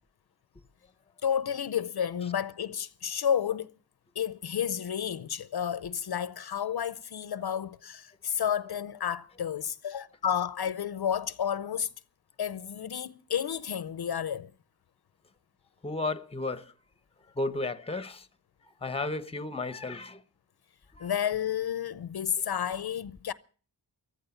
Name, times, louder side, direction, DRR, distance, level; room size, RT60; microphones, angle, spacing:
voice 1, 1.2-3.7 4.2-11.9 12.4-14.5 21.0-23.3, left 8 dB, 60° left, 0.7 m, -31 dB
voice 2, 15.8-16.7 17.4-18.3 18.8-20.2 20.9-21.1, left 2 dB, 15° left, 0.8 m, -33 dB
14.5 x 14.0 x 6.9 m
wide cardioid pair, 165°, 43 cm